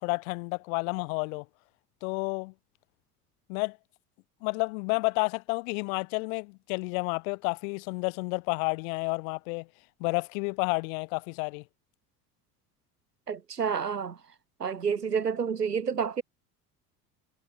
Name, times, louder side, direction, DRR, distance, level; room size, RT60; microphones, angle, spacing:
voice 1, 0.0-1.5 2.0-2.5 3.5-3.8 4.4-9.7 10.0-11.6, left 33 dB, 60° left, 2.0 m, -30 dB
voice 2, 13.3-14.2 14.6-16.2, right 6 dB, 85° right, 2.3 m, -29 dB
figure-of-eight pair, 65°, 46 cm